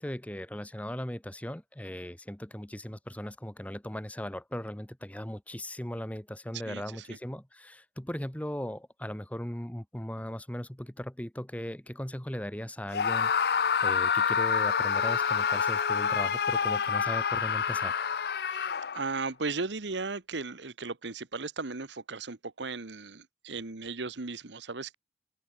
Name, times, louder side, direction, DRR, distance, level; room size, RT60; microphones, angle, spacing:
voice 1, 0.0-18.0, equal, 10° left, 0.9 m, -38 dB
voice 2, 6.6-7.2 18.4-24.9, right 3 dB, 85° right, 1.3 m, -36 dB
Screaming, 12.9-19.2, left 6 dB, 60° left, 0.5 m, -27 dB
open air
head